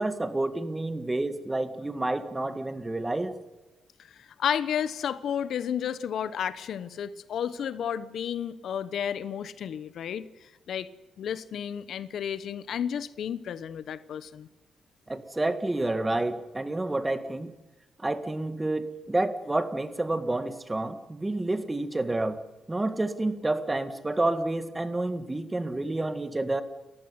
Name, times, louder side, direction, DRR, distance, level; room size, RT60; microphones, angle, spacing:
voice 1, 0.0-3.4 15.1-17.5 18.0-22.4 22.7-26.6, right 2 dB, 15° right, 11 dB, 1.7 m, -29 dB
voice 2, 4.0-10.9 11.2-14.5, left 8 dB, 70° left, 15 dB, 1.1 m, -32 dB
29.5 x 15.0 x 9.7 m, 1.1 s
cardioid pair, 115°, 0 cm